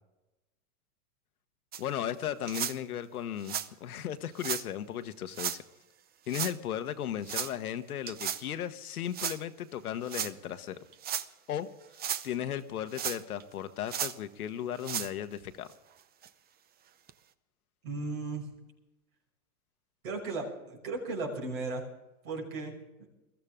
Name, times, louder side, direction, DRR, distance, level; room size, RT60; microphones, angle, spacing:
sound 1, 1.7-1.8 2.5-2.8 3.4-3.7 4.4-4.6 5.3-5.6 6.3-6.6 7.3-7.5 8.1-8.4 9.1-9.4 10.1-10.3 10.9-11.3 11.8-12.3 12.9-13.4 13.9-14.2 14.8-15.1 15.7-15.8 16.2-16.3 17.1-17.2, right 9 dB, 20° right, 0.6 m, -34 dB
voice 1, 1.8-5.6 6.3-10.8 11.5-11.7 12.2-15.7, left 10 dB, 85° left, 10 dB, 1.3 m, -36 dB
voice 2, 17.8-18.5 20.0-21.8 22.2-22.7, right 3 dB, 75° right, 0 dB, 6.3 m, -35 dB
22.0 x 14.5 x 3.7 m, 1.0 s
hypercardioid pair, 115°, 43 cm